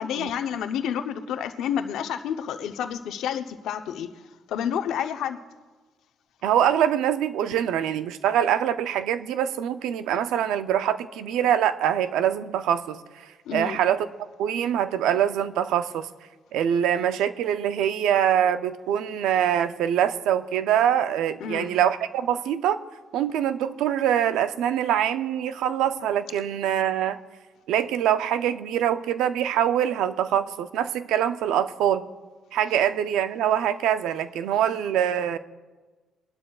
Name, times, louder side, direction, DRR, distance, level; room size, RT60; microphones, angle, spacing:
voice 1, 0.0-4.1 4.5-5.4 13.5-13.8 21.4-21.7, left 8 dB, 80° left, 7 dB, 0.7 m, -29 dB
voice 2, 6.4-13.0 13.5-14.1 14.4-16.1 16.5-22.8 23.1-27.2 27.7-32.1 32.5-35.4, right 10 dB, 90° right, 12 dB, 0.5 m, -24 dB
21.0 x 12.0 x 2.4 m, 1.3 s
cardioid pair, 90°, 0 cm